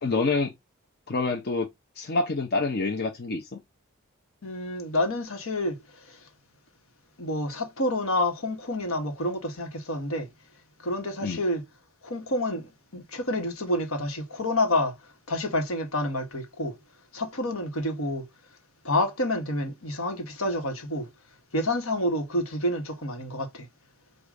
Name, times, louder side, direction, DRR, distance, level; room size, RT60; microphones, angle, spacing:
voice 1, 0.0-0.5 1.1-1.7 2.0-3.6 11.2-11.4, left 3 dB, 50° left, 0.7 m, -27 dB
voice 2, 4.4-5.8 6.1-6.2 7.2-10.3 10.8-11.6 12.0-14.9 15.3-16.8 17.1-18.3 18.8-21.1 21.5-23.7, left 1 dB, 80° left, 1.3 m, -28 dB
4.9 x 2.5 x 3.7 m
head